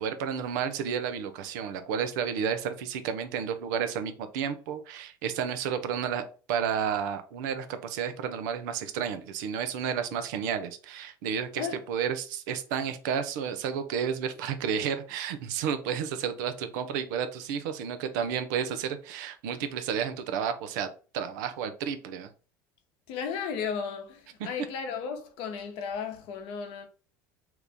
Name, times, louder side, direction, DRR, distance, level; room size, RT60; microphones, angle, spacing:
voice 1, 0.0-6.2 6.5-20.9 21.1-22.3, right 7 dB, 70° right, 0.6 m, -31 dB
voice 2, 23.1-26.9, left 6 dB, 65° left, 0.8 m, -34 dB
3.0 x 2.5 x 3.5 m
hypercardioid pair, 75°, 10 cm